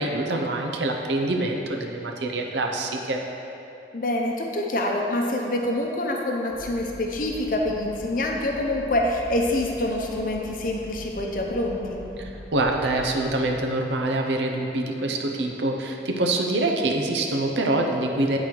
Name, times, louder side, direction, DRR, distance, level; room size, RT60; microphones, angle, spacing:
voice 1, 0.0-3.2 12.2-18.4, right 2 dB, 90° right, 2 dB, 0.7 m, -25 dB
voice 2, 3.9-12.0, left 1 dB, 50° left, 0 dB, 0.7 m, -26 dB
sound 1, 6.5-13.6, left 1 dB, 5° left, 1.2 m, -42 dB
9.0 x 4.0 x 4.5 m, 2.8 s
head